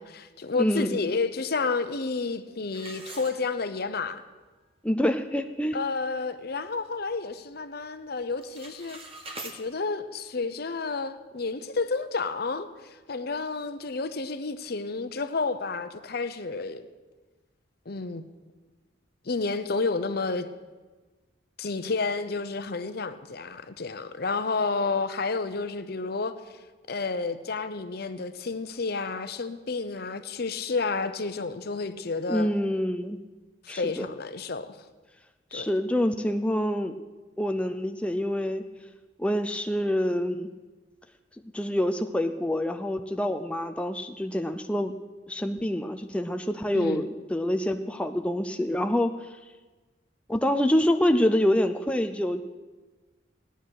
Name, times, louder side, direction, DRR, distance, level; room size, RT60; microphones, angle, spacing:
voice 1, 0.0-4.2 5.7-9.0 9.5-12.7 13.1-16.9 17.9-18.2 19.2-20.5 21.6-26.3 26.9-32.5 33.6-34.7 35.5-35.7 46.7-47.1, left 4 dB, 55° left, 0.8 m, -30 dB
voice 2, 0.6-1.0 4.8-5.8 32.3-33.2 33.7-34.1 35.5-37.0 37.4-38.6 39.2-40.5 41.5-44.9 45.3-49.3 50.3-52.4, left 1 dB, 5° left, 0.5 m, -26 dB
sound 1, 2.7-4.0 4.4-4.5 5.1-5.2 5.6-5.9 6.3-7.4 7.7-8.0 8.3-9.6, right 2 dB, 30° right, 1.3 m, -44 dB
17.0 x 10.0 x 6.5 m
head